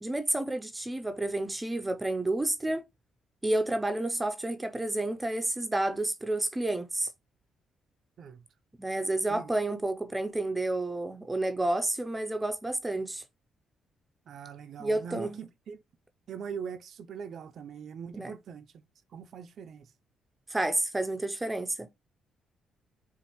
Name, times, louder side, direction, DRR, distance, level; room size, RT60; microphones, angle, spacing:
voice 1, 0.0-2.8 3.4-7.1 8.8-13.2 14.8-15.5 18.1-18.3 20.5-21.9, right 2 dB, 15° right, 0.6 m, -30 dB
voice 2, 14.3-15.8 16.3-18.7 19.1-19.9, right 6 dB, 60° right, 0.5 m, -41 dB
6.9 x 2.5 x 2.9 m
cardioid pair, 90°, 0 cm